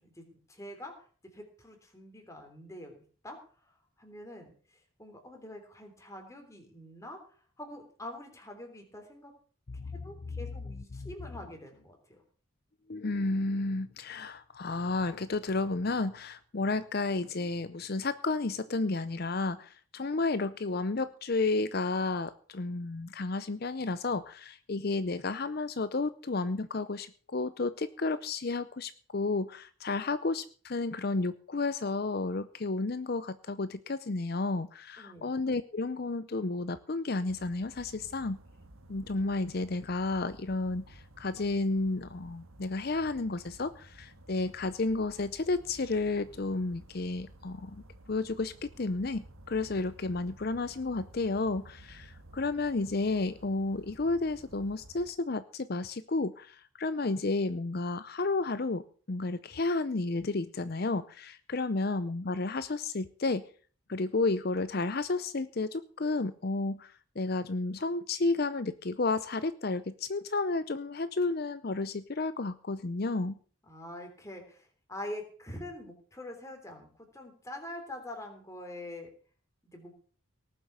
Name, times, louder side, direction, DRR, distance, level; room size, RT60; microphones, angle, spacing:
voice 1, 0.0-1.1 1.3-3.0 3.2-3.4 3.7-9.3 9.8-12.2 35.0-35.3 73.7-79.1 79.6-80.0, left 1 dB, 15° left, 4 dB, 3.3 m, -45 dB
voice 2, 12.9-38.4 38.9-47.8 48.1-63.4 63.9-73.4, left 3 dB, 45° left, 14 dB, 0.6 m, -32 dB
sound 1, 37.3-55.1, right 1 dB, 85° right, 1.7 m, -54 dB
18.5 x 7.6 x 6.8 m, 0.43 s
head